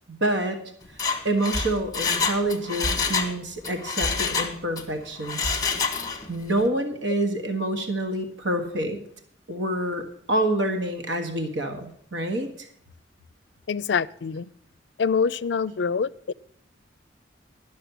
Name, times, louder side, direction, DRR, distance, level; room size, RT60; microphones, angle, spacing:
voice 1, 0.1-0.6 1.2-5.6 6.3-9.0 9.5-12.7, right 1 dB, 80° right, 5 dB, 1.5 m, -27 dB
Mechanisms, 0.9-3.3 3.6-4.9 5.2-6.3 6.6-6.7, left 5 dB, 20° left, 1.4 m, -27 dB
voice 2, 13.7-14.5 15.0-16.3, left 5 dB, 70° left, 19 dB, 0.4 m, -25 dB
12.0 x 6.4 x 8.1 m, 0.64 s
head